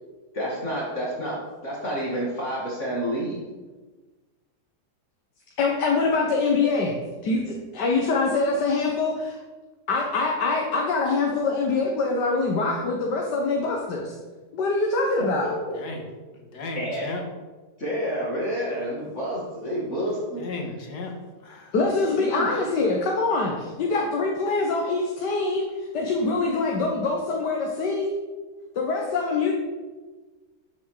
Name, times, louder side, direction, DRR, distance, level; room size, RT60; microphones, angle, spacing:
voice 1, 0.3-3.4 16.7-17.2 17.8-20.4 26.0-26.1, equal, 45° left, -5 dB, 2.6 m, -29 dB
voice 2, 5.6-7.0 7.2-9.4 9.9-14.2 14.5-15.5 21.7-28.1 28.8-29.5, left 3 dB, 90° left, 0 dB, 1.9 m, -24 dB
voice 3, 15.7-16.1 16.3-17.2 20.3-21.1 21.4-22.6, left 3 dB, 75° left, 2 dB, 2.2 m, -36 dB
12.5 x 7.2 x 4.9 m, 1.3 s
omnidirectional pair, 1.8 m